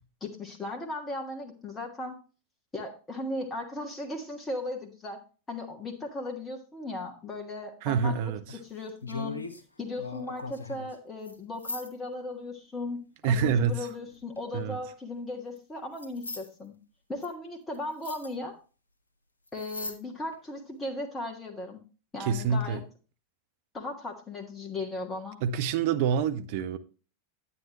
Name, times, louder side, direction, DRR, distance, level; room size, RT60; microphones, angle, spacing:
voice 1, 0.2-2.2 2.7-5.2 5.5-8.3 8.6-9.4 9.8-16.7 17.1-18.6 19.5-21.8 22.1-22.8 23.7-25.4, left 2 dB, 15° left, 1.6 m, -37 dB
voice 2, 7.8-8.4 13.2-13.9 14.5-14.8 22.2-22.8 25.4-26.8, right 6 dB, 50° right, 0.8 m, -26 dB
sound 1, 8.5-9.6 10.0-11.0 11.3-11.4 11.6-11.9 13.9-14.4 15.6-15.7 16.0-16.5 17.2-17.3 17.7-17.8 18.0-18.3 19.5-20.0 20.3-20.4, left 2 dB, 75° left, 1.1 m, -39 dB
9.5 x 9.2 x 3.0 m
figure-of-eight pair, 90°, 0 cm